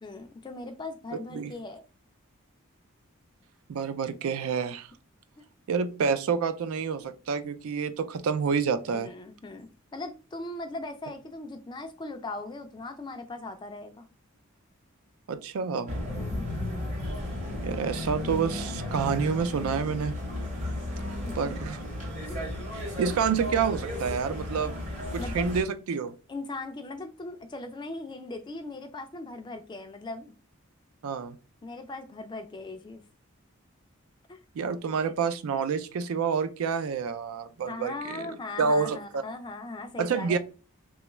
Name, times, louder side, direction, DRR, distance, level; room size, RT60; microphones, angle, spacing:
voice 1, 0.0-1.8 8.9-14.1 16.2-16.5 21.2-21.5 22.3-22.5 25.2-25.5 26.3-30.3 31.6-33.0 34.3-34.4 37.7-40.4, left 2 dB, 20° left, 0.3 m, -39 dB
voice 2, 3.7-4.9 5.7-9.1 15.3-16.0 17.6-20.1 21.4-21.8 22.7-24.8 25.1-26.1 31.0-31.4 34.6-38.3 38.6-39.2 40.0-40.4, right 6 dB, 80° right, 0.4 m, -28 dB
sound 1, 15.9-25.6, left 1 dB, 35° right, 0.8 m, -34 dB
2.9 x 2.3 x 3.0 m
head